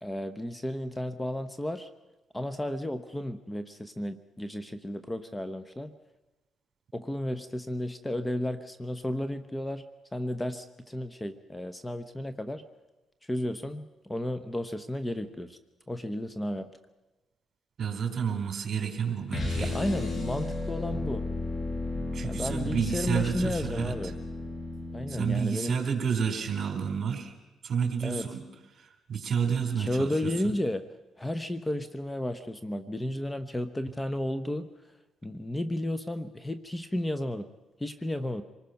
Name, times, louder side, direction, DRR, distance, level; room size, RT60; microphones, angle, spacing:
voice 1, 0.0-1.9 2.3-5.9 6.9-9.8 10.1-12.6 13.2-15.6 15.9-16.7 19.6-21.2 22.2-24.2 24.9-25.8 28.0-28.3 29.8-30.8 31.2-34.7 35.2-37.5 37.8-38.4, left 1 dB, 10° left, 11 dB, 0.9 m, -33 dB
voice 2, 17.8-19.7 22.1-23.9 25.1-27.3 27.6-28.4 28.8-30.3, right 7 dB, 50° right, 5 dB, 4.1 m, -30 dB
sound 1, 19.3-25.4, left 3 dB, 45° left, 4.6 m, -34 dB
26.5 x 19.5 x 5.8 m, 1.1 s
cardioid pair, 90°, 0 cm